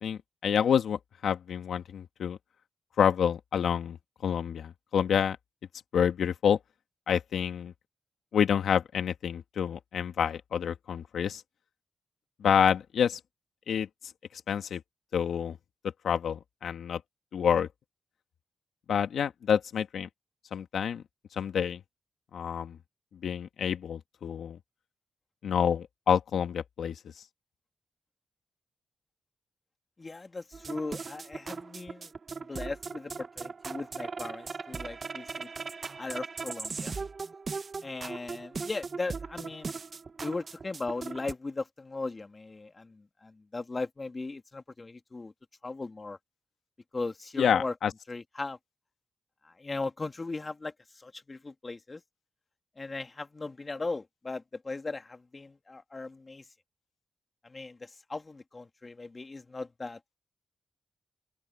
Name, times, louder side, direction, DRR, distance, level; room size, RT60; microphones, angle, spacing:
voice 1, 0.0-2.4 3.0-4.0 4.2-5.4 5.9-6.6 7.1-7.7 8.3-11.4 12.4-13.2 13.7-13.9 14.3-14.8 15.1-15.6 16.0-17.0 17.3-17.7 18.9-20.1 20.5-21.0 21.3-21.8 22.3-22.8 23.2-24.6 25.4-27.0 47.4-47.9, left 8 dB, 80° left, 1.4 m, -28 dB
voice 2, 30.0-32.1 32.4-35.5 36.0-36.9 37.8-39.8 40.2-45.3 45.6-46.2 46.9-47.7 48.1-48.6 49.4-52.0 52.8-56.5 57.4-60.0, left 3 dB, 35° left, 2.7 m, -38 dB
sound 1, 30.5-41.3, right 4 dB, 50° right, 1.0 m, -39 dB
open air
cardioid pair, 60°, 0 cm